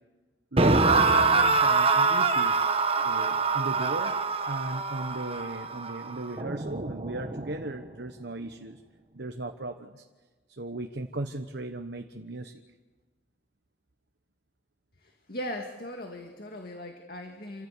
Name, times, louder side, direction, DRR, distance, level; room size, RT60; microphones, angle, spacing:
voice 1, 0.5-4.1 4.4-8.8 9.1-10.0 10.5-12.6, right 2 dB, 75° right, 6 dB, 1.2 m, -36 dB
sound 1, 0.6-7.7, right 4 dB, 35° right, 1.1 m, -25 dB
voice 2, 15.3-17.7, left 1 dB, 60° left, 3 dB, 2.0 m, -38 dB
28.0 x 15.5 x 8.3 m, 1.3 s
head